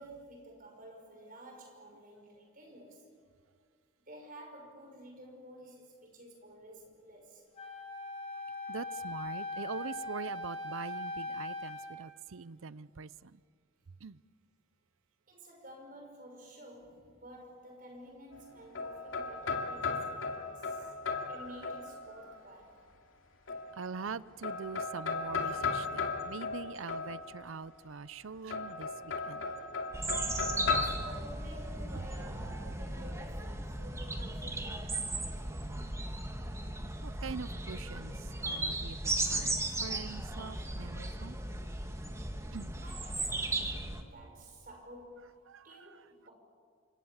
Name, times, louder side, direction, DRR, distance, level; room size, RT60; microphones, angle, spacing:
voice 1, 0.0-3.1 4.0-7.4 15.3-20.9 21.3-22.8 30.7-35.7 42.8-45.4 45.6-46.3, equal, 40° right, 2 dB, 6.0 m, -51 dB
Wind instrument woodwind instrument, 7.6-12.0, left 2 dB, 30° left, 3.3 m, -40 dB
voice 2, 8.7-13.1 14.0-14.2 20.8-21.3 23.8-29.5 32.4-32.7 37.0-41.4 42.5-42.8 45.5-45.7, right 5 dB, 75° right, 18 dB, 0.6 m, -43 dB
sound 1, 18.3-22.3 23.5-24.1 24.4-27.6 28.5-30.8, left 4 dB, 75° left, 2.6 m, -36 dB
sound 2, 29.9-44.0, right 2 dB, 15° right, 1.7 m, -36 dB
28.5 x 25.5 x 7.3 m, 2.1 s
head